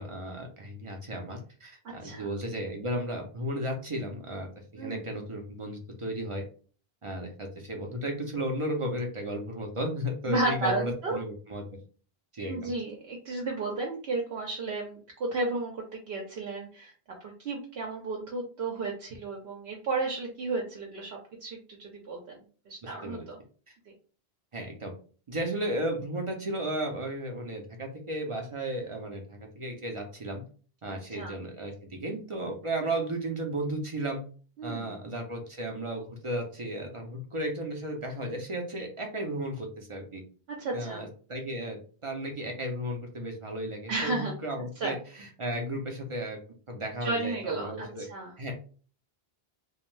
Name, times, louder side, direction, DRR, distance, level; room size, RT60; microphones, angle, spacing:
voice 1, 0.0-6.4 7.0-11.6 12.3-12.7 22.8-23.2 23.7-23.8 24.5-24.9 25.3-30.4 30.8-34.2 34.6-40.2 40.7-46.4 46.7-48.1 48.4-48.5, right 1 dB, 40° right, 2 dB, 0.5 m, -34 dB
voice 2, 4.8-5.1 10.3-11.2 12.4-16.9 17.2-23.4 31.1-31.4 34.6-35.0 40.5-41.1 43.9-44.4 44.8-45.0 47.0-48.3, right 3 dB, 75° right, -1 dB, 0.9 m, -33 dB
2.5 x 2.2 x 3.1 m, 0.40 s
omnidirectional pair, 1.0 m